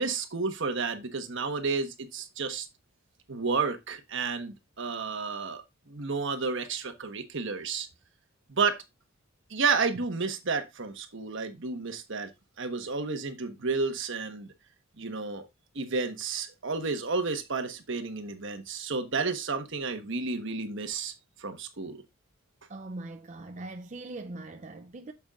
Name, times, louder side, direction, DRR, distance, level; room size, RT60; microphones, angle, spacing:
voice 1, 0.0-2.7 3.3-7.9 8.5-8.8 9.5-12.3 12.6-14.5 15.0-15.5 15.7-21.1 21.4-22.0, right 4 dB, 60° right, 1.3 m, -31 dB
voice 2, 22.7-25.1, right 2 dB, 35° right, 0.5 m, -41 dB
8.8 x 7.1 x 2.4 m
head